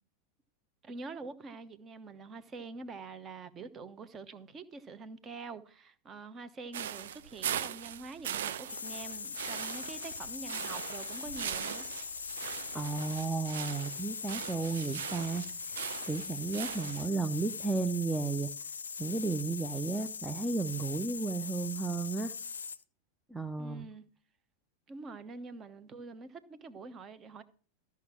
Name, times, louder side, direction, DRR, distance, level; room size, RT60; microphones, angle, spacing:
voice 1, 0.8-11.9 23.6-24.0 24.9-27.4, right 4 dB, 25° right, 1.0 m, -45 dB
sound 1, 6.7-17.1, right 9 dB, 60° right, 0.6 m, -40 dB
sound 2, 8.7-22.8, left 6 dB, 70° left, 0.5 m, -41 dB
voice 2, 12.7-18.5 19.0-22.3 23.3-23.9, right 3 dB, 5° right, 0.6 m, -34 dB
13.5 x 5.9 x 6.0 m
figure-of-eight pair, 90°, 0 cm